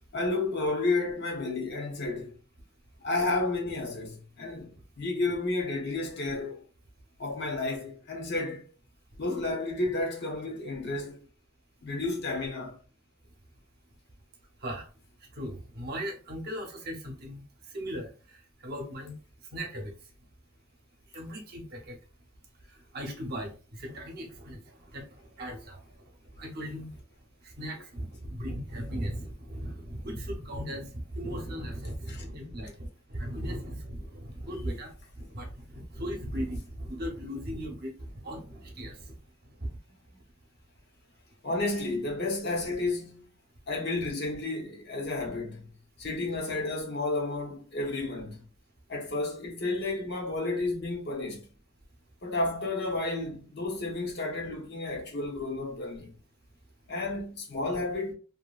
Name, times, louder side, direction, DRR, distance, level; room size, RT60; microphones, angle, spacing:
voice 1, 0.1-2.3 3.0-6.6 7.2-8.6 9.2-11.2 11.8-12.8 32.1-32.6 41.4-43.3 43.7-45.7 46.0-48.5 48.9-51.4 52.2-56.1 56.9-58.1, left 2 dB, 55° left, 0.8 m, -31 dB
voice 2, 15.4-17.4 17.7-18.1 18.6-19.2 19.5-19.9 21.1-21.9 22.9-23.5 23.8-24.6 24.9-25.0 25.4-25.8 26.4-26.9 27.6-32.7 33.1-34.9 35.3-35.5 35.9-37.9 38.2-39.1, equal, 50° right, 0.8 m, -37 dB
2.7 x 2.7 x 2.3 m
head